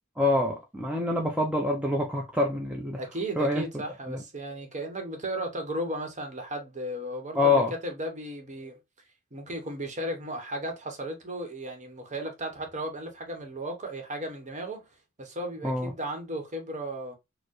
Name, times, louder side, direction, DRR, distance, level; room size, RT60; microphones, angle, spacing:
voice 1, 0.2-3.0 3.4-3.7 4.1-4.2 7.3-7.7 15.6-15.9, left 2 dB, 5° right, 0.4 m, -26 dB
voice 2, 3.0-8.8 9.3-14.9 15.2-17.2, right 1 dB, 35° right, 0.9 m, -35 dB
4.4 x 2.1 x 3.0 m
head